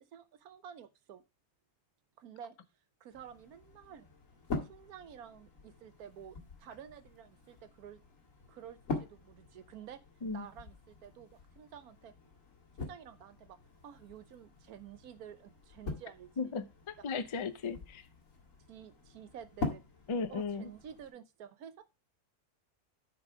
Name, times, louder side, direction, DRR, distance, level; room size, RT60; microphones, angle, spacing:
voice 1, 0.1-1.2 2.2-2.6 3.0-4.1 4.6-8.0 8.5-10.0 10.3-12.1 12.8-13.6 13.8-16.5 17.1-17.3 18.7-19.8 20.3-21.8, right 9 dB, 85° right, 1.3 m, -51 dB
sound 1, 3.1-21.1, left 3 dB, 65° left, 2.1 m, -45 dB
voice 2, 16.4-18.0 20.1-20.7, left 4 dB, 45° left, 0.4 m, -36 dB
9.9 x 4.7 x 4.7 m
omnidirectional pair, 1.5 m